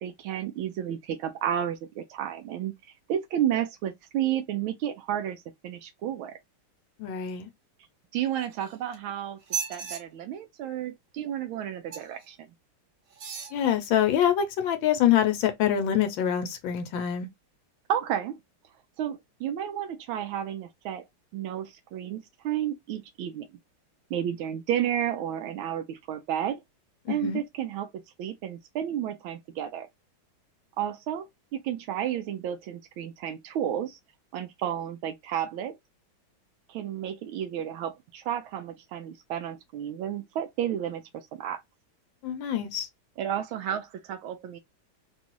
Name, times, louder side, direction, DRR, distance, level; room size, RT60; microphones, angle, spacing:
voice 1, 0.0-2.7 3.1-6.4 8.1-9.4 9.7-12.4 17.9-18.4 19.0-21.0 21.3-23.5 24.1-26.6 27.1-29.9 30.8-31.3 31.5-34.0 34.3-35.8 36.7-41.6 43.2-44.6, right 10 dB, 80° right, 1.4 m, -32 dB
voice 2, 7.0-7.5 13.5-17.3 27.1-27.4 42.2-42.9, left 10 dB, 75° left, 1.4 m, -25 dB
sound 1, 8.3-9.0 9.4-10.0 11.9-12.3 13.1-13.6 14.2-14.3, right 7 dB, 55° right, 1.1 m, -36 dB
4.1 x 2.3 x 2.9 m
omnidirectional pair, 2.2 m